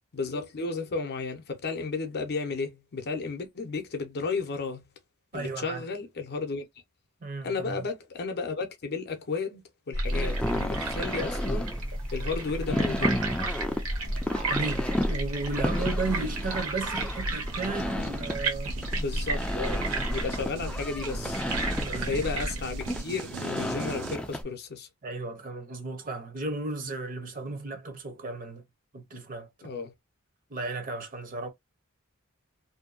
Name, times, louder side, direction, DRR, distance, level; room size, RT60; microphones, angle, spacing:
voice 1, 0.1-4.8 5.3-6.7 7.4-11.7 12.1-13.2 18.9-21.4 22.1-24.9 29.6-29.9, left 4 dB, 50° left, 0.6 m, -33 dB
voice 2, 5.3-5.8 7.2-7.8 14.5-18.7 21.8-22.2 25.0-28.6 28.9-29.5 30.5-31.5, right 3 dB, 40° right, 0.7 m, -34 dB
sound 1, 9.9-23.0, right 2 dB, 70° right, 0.9 m, -32 dB
sound 2, 10.1-24.4, left 1 dB, 5° left, 0.3 m, -33 dB
sound 3, 13.9-24.2, right 9 dB, 90° right, 0.3 m, -46 dB
2.6 x 2.2 x 2.4 m
head